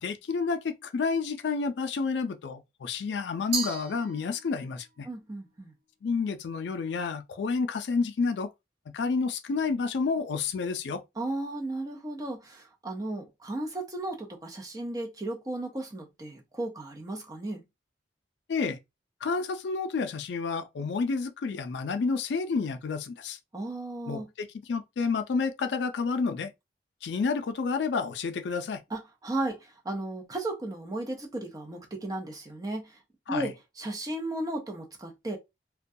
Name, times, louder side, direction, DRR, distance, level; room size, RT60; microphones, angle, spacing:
voice 1, 0.0-5.1 6.0-8.5 8.9-11.0 18.5-18.8 19.2-23.4 24.1-26.5 27.0-28.8 33.3-33.5, left 4 dB, 80° left, 0.4 m, -30 dB
Glass, 3.5-4.7, right 4 dB, 60° right, 0.6 m, -35 dB
voice 2, 5.0-5.7 11.2-17.6 23.5-24.3 28.9-33.0 33.3-35.4, right 2 dB, 20° right, 0.5 m, -35 dB
2.2 x 2.2 x 2.6 m
head